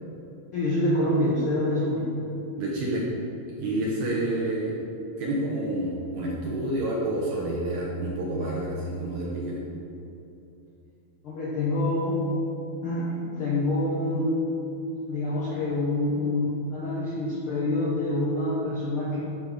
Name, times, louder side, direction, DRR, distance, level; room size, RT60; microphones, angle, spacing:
voice 1, 0.5-2.1 11.2-12.2 12.8-14.4 15.1-19.2, left 1 dB, 70° left, -6 dB, 1.3 m, -26 dB
voice 2, 2.6-3.1 3.6-4.8 5.2-9.6, right 1 dB, 70° right, -4 dB, 1.9 m, -29 dB
11.5 x 4.2 x 5.0 m, 2.8 s
omnidirectional pair, 4.2 m